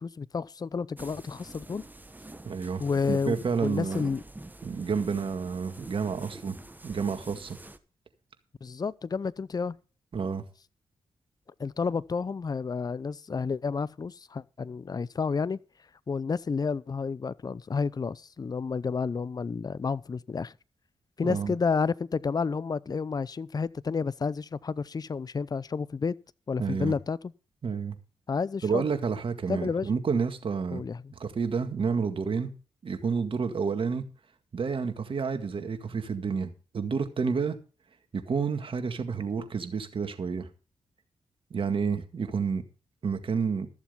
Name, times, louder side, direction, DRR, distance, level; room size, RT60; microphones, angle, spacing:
voice 1, 0.0-1.8 2.8-4.2 8.6-9.8 11.6-15.6 16.1-20.5 21.2-26.2 26.5-27.2 28.3-28.9 29.5-29.9 30.7-31.1, left 5 dB, 40° left, 0.6 m, -30 dB
sound 1, 1.0-7.8, right 2 dB, 15° right, 1.4 m, -47 dB
voice 2, 2.4-4.1 4.6-6.6 6.8-7.6 10.1-10.4 21.2-21.5 26.6-27.0 27.6-28.0 28.6-30.8 31.2-32.5 32.8-34.0 34.5-37.6 38.1-40.5 41.5-42.6 43.0-43.7, right 5 dB, 55° right, 1.9 m, -30 dB
13.5 x 7.2 x 5.6 m
supercardioid pair, 45°, 10 cm